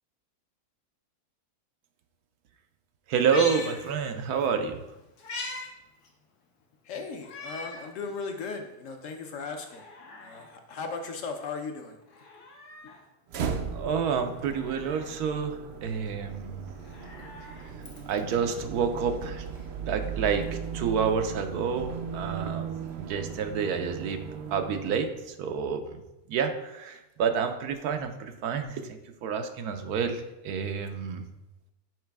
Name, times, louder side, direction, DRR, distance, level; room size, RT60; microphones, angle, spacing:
Meow, 3.1-4.5 4.8-5.7 6.0-6.1 7.2-7.9 8.4-8.5 9.5-10.5 12.0-13.0 14.4-15.2 16.7-18.3 19.6-19.7, left 2 dB, 80° left, 1.5 m, -41 dB
voice 1, 3.1-4.8 13.7-16.6 18.1-19.4 19.8-20.4 20.7-24.2 24.5-26.0 26.3-31.2, right 6 dB, 90° right, 7 dB, 1.2 m, -29 dB
voice 2, 6.8-9.9 10.2-12.0 12.8-12.9, left 4 dB, 65° left, 4 dB, 1.0 m, -37 dB
sound 1, 13.3-25.3, right 6 dB, 70° right, 0.6 m, -37 dB
6.3 x 4.8 x 3.4 m, 0.93 s
omnidirectional pair, 1.6 m